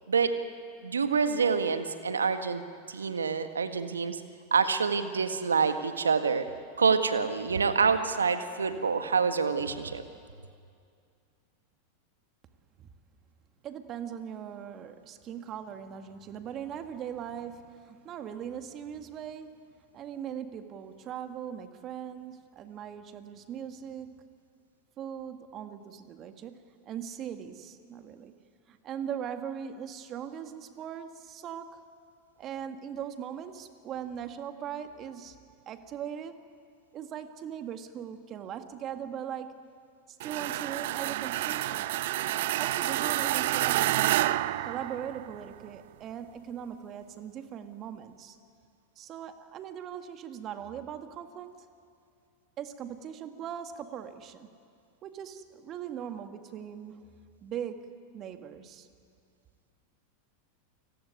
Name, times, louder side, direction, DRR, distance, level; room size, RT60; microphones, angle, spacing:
voice 1, 0.8-2.6 2.9-4.2 4.5-6.5 6.8-10.0, right 5 dB, 85° right, 9 dB, 1.6 m, -27 dB
voice 2, 13.6-19.6 19.9-24.3 25.0-28.3 28.7-31.9 32.4-35.4 35.7-36.4 36.9-39.6 40.1-41.9 42.6-44.3 44.6-48.4 49.0-51.7 52.6-54.5 55.0-57.0 57.4-58.9, right 9 dB, 35° right, 7 dB, 2.0 m, -40 dB
sound 1, 40.2-45.4, right 15 dB, 60° right, 0.6 m, -29 dB
29.5 x 19.0 x 9.6 m, 2.3 s
hypercardioid pair, 90°, 0 cm